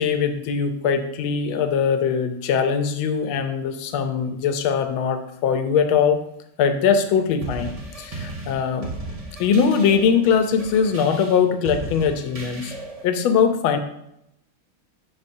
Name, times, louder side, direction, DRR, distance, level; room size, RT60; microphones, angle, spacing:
voice 1, 0.0-6.2 6.6-8.9 9.4-12.7 13.0-13.8, left 6 dB, 80° left, 7 dB, 1.5 m, -21 dB
sound 1, 7.4-13.1, right 2 dB, 55° right, 0.4 m, -35 dB
11.0 x 4.2 x 2.7 m, 0.79 s
omnidirectional pair, 2.3 m